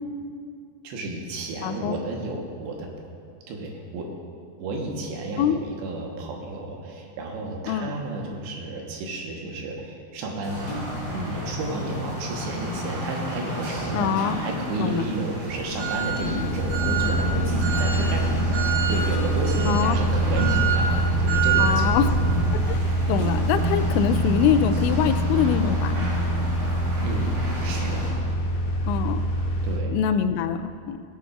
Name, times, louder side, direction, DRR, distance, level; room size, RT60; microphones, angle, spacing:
voice 1, 0.8-2.9 3.5-4.1 4.6-10.6 11.1-21.9 27.0-28.1 29.6-29.9, right 2 dB, 80° right, 0 dB, 3.2 m, -32 dB
voice 2, 1.6-2.0 5.4-5.6 7.7-7.9 13.9-14.4 14.8-15.1 19.7-20.0 21.6-22.1 22.7-22.8 23.1-26.0 28.9-29.2 29.9-31.0, left 9 dB, 90° left, 10 dB, 2.8 m, -24 dB
sound 1, 10.4-28.1, right 2 dB, 60° right, 4.9 m, -29 dB
sound 2, 10.6-11.2 13.2-13.3 13.8-14.7 16.3-16.6 19.1-19.7 20.7-21.4 22.1-22.2 22.5-22.6 23.1-23.8 24.3-24.4, right 1 dB, 45° left, 3.1 m, -38 dB
sound 3, 16.2-29.8, right 1 dB, 70° left, 3.5 m, -25 dB
17.0 x 9.2 x 2.4 m, 2.3 s
omnidirectional pair, 5.1 m